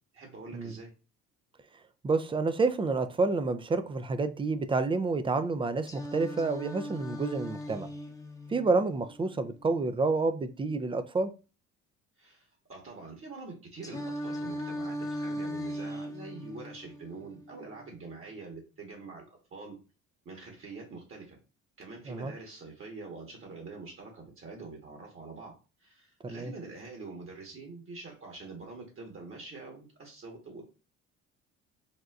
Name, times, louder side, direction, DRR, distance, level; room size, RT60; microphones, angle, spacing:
voice 1, 0.1-0.9 12.2-19.2 19.5-19.8 20.2-21.4 21.8-25.5 25.8-30.6, right 3 dB, 40° right, 1 dB, 1.3 m, -45 dB
voice 2, 2.0-7.9 8.5-11.3 22.1-22.3 26.2-26.5, right 3 dB, 15° right, 11 dB, 0.4 m, -29 dB
Singing, 5.9-9.9 13.8-17.9, equal, 10° left, 0.8 m, -39 dB
4.1 x 2.2 x 2.5 m, 0.32 s
supercardioid pair, 70°, 32 cm